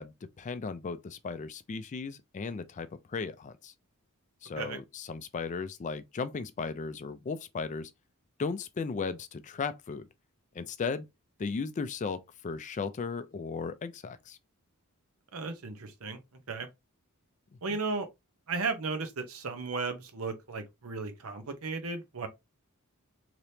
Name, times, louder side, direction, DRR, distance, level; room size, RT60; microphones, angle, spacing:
voice 1, 0.0-3.7 4.4-7.9 8.4-10.1 10.5-11.0 11.4-14.4 17.7-17.8, left 4 dB, 35° left, 0.3 m, -36 dB
voice 2, 15.3-16.2 16.5-16.7 17.6-18.1 18.5-22.3, right 4 dB, 70° right, 0.8 m, -35 dB
3.3 x 2.9 x 2.7 m
head